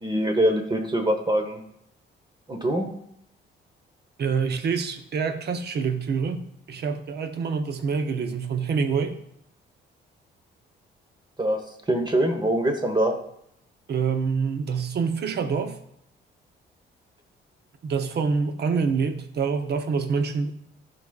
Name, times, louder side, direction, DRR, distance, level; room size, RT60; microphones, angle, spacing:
voice 1, 0.0-1.6 2.5-2.9 11.4-11.6 11.9-13.1, right 1 dB, 20° right, 5 dB, 1.1 m, -23 dB
voice 2, 4.2-9.2 13.9-15.8 17.8-20.5, right 5 dB, 55° right, 8 dB, 0.8 m, -26 dB
12.0 x 5.0 x 2.4 m, 0.75 s
cardioid pair, 90°, 20 cm